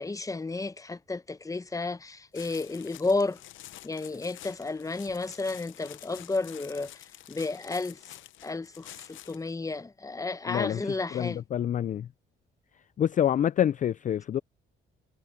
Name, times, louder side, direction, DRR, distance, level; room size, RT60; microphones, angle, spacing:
voice 1, 0.0-3.4 3.8-11.4, left 3 dB, 15° left, 0.9 m, -32 dB
sound 1, 2.3-9.5, left 14 dB, 75° left, 0.7 m, -48 dB
voice 2, 10.5-12.1 13.0-14.4, left 10 dB, 40° left, 0.4 m, -27 dB
cardioid pair, 90°, 20 cm